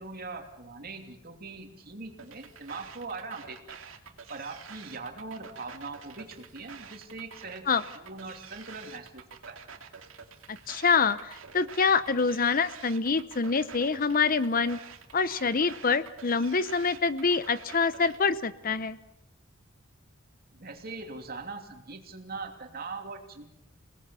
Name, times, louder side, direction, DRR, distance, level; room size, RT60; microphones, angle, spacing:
voice 1, 0.0-3.8 4.3-9.6 20.5-23.5, right 3 dB, 50° right, 4 dB, 2.9 m, -41 dB
sound 1, 2.2-18.2, right 6 dB, 80° right, 2.4 m, -48 dB
voice 2, 10.5-14.8 15.1-19.0, left 5 dB, 45° left, 15 dB, 0.8 m, -26 dB
28.5 x 18.5 x 7.0 m, 0.81 s
head